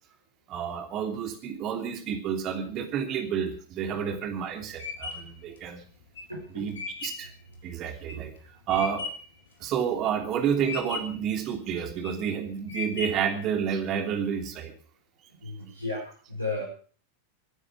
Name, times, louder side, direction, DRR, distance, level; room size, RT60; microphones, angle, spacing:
voice 1, 0.5-5.8 6.5-7.3 7.6-8.3 8.7-9.1 9.6-14.7, right 8 dB, 35° right, 6 dB, 3.1 m, -30 dB
sound 1, 3.9-9.4 9.8-10.3 10.6-11.3 11.8-12.3 12.7-13.4, left 4 dB, 65° left, 3.4 m, -37 dB
voice 2, 6.3-6.6 8.1-8.2 15.4-16.6, left 2 dB, 85° left, -5 dB, 5.7 m, -34 dB
24.0 x 9.8 x 5.0 m, 0.42 s
figure-of-eight pair, 90°, 0 cm